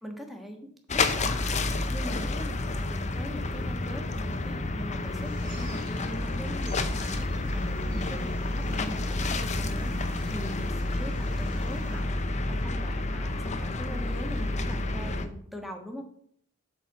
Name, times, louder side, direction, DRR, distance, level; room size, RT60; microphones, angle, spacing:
voice 1, 0.0-1.6 1.9-16.0, equal, ahead, 3 dB, 1.4 m, -41 dB
sound 1, 0.9-15.3, left 2 dB, 30° left, 0.7 m, -30 dB
sound 2, 5.2-12.0, equal, 55° right, 2.6 m, -47 dB
8.3 x 4.6 x 7.2 m, 0.64 s
head